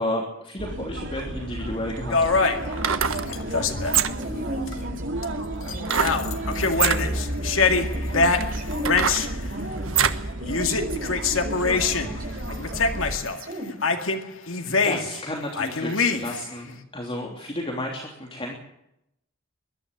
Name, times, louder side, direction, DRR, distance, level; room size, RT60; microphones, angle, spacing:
voice 1, 0.0-2.4 14.8-18.5, left 1 dB, 25° left, 0 dB, 3.2 m, -32 dB
sound 1, 0.6-13.2, right 1 dB, 65° right, 2.5 m, -32 dB
sound 2, 1.5-1.6 2.6-3.3 3.8-4.4 5.8-6.2 6.7-7.0 7.7-7.8 8.4-10.3 10.7-10.8, right 8 dB, 90° right, 1.3 m, -24 dB
sound 3, 2.1-4.0 4.7-4.8 5.2-5.4 5.7-9.3 10.4-12.1 12.5-13.4 13.8-15.3 15.5-16.5, left 4 dB, 85° left, 2.2 m, -24 dB
voice 2, 2.8-5.3 5.7-13.7, equal, 45° right, 3 dB, 5.6 m, -38 dB
22.5 x 12.5 x 9.9 m, 0.78 s
head